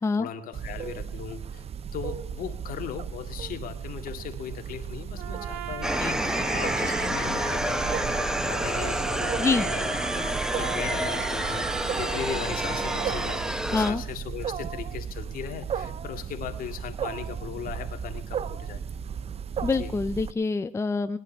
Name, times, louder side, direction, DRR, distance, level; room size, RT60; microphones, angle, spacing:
voice 1, 0.2-1.6 1.9-18.8 19.7-20.0, left 8 dB, 55° left, 6 dB, 2.1 m, -38 dB
Wild animals, 0.5-20.3, right 7 dB, 35° right, 0.7 m, -35 dB
Trumpet, 5.2-13.5, right 9 dB, 80° right, 1.7 m, -37 dB
sound 1, 5.8-13.9, equal, 5° right, 1.1 m, -29 dB
voice 2, 19.6-21.2, left 4 dB, 15° left, 11 dB, 0.6 m, -25 dB
20.0 x 11.0 x 4.5 m, 0.70 s
hypercardioid pair, 75°, 18 cm